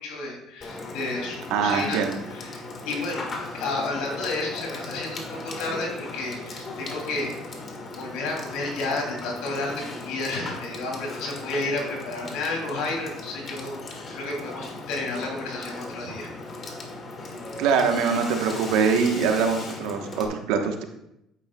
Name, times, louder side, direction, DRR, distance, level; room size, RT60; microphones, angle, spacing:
voice 1, 0.0-3.3 3.5-7.5 7.9-16.3, left 2 dB, 80° left, -1 dB, 2.9 m, -31 dB
Water / Water tap faucet / Sink (filling or washing), 0.6-20.3, left 2 dB, 40° left, 1.6 m, -38 dB
voice 2, 1.5-2.2 17.6-20.8, right 5 dB, 80° right, 4 dB, 1.1 m, -23 dB
9.6 x 8.3 x 2.3 m, 0.82 s
cardioid pair, 105°, 0 cm